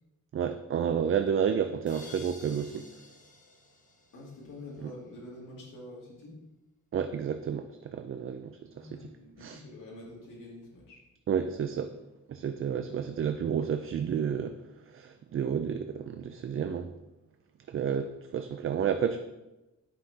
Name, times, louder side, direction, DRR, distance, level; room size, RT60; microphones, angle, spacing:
voice 1, 0.3-2.8 6.9-9.1 9.4-9.6 11.3-11.9 12.3-14.6 14.9-16.9 17.7-19.2, right 7 dB, 45° right, 8 dB, 0.4 m, -31 dB
sound 1, 1.9-4.7, left 2 dB, 25° left, 1.2 m, -51 dB
voice 2, 4.1-6.4 8.7-11.0, left 2 dB, 85° left, -5 dB, 2.4 m, -46 dB
10.0 x 5.7 x 2.8 m, 1.0 s
wide cardioid pair, 125°, 31 cm